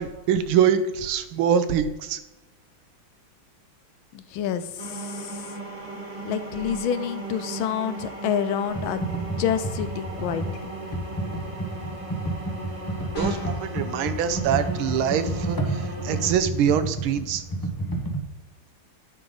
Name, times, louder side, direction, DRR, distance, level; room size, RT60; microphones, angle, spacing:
voice 1, 0.0-2.2 13.2-17.4, right 8 dB, 85° right, 10 dB, 1.6 m, -24 dB
voice 2, 4.1-5.6 6.2-9.1 9.4-10.4, left 9 dB, 80° left, 11 dB, 1.4 m, -28 dB
sound 1, 4.8-16.3, right 2 dB, 20° right, 0.9 m, -37 dB
Computer keyboard, 8.7-18.2, right 1 dB, 25° left, 0.4 m, -30 dB
sound 2, 13.1-13.7, left 1 dB, 50° left, 2.6 m, -32 dB
10.5 x 5.1 x 3.8 m, 1.1 s
omnidirectional pair, 2.3 m